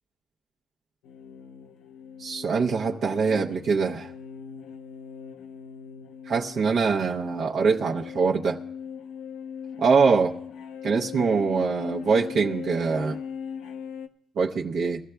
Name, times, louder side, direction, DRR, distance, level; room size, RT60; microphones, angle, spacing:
sound 1, 1.0-14.1, left 7 dB, 90° left, 0.7 m, -39 dB
voice 1, 2.2-4.1 6.3-8.6 9.8-10.3 10.8-13.2 14.4-15.0, right 5 dB, 60° right, 0 dB, 0.7 m, -23 dB
22.0 x 14.5 x 2.3 m, 0.70 s
cardioid pair, 90°, 0 cm